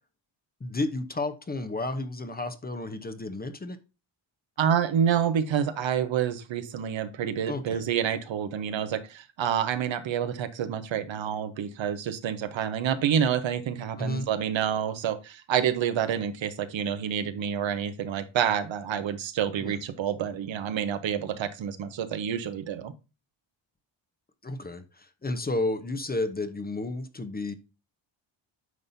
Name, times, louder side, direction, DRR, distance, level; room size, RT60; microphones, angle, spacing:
voice 1, 0.6-3.8 7.5-7.9 14.0-14.3 19.6-19.8 24.4-27.5, left 2 dB, 20° left, 10 dB, 0.8 m, -32 dB
voice 2, 4.6-22.9, right 8 dB, 70° right, 10 dB, 1.0 m, -28 dB
9.5 x 5.4 x 2.7 m, 0.30 s
wide cardioid pair, 130°, 47 cm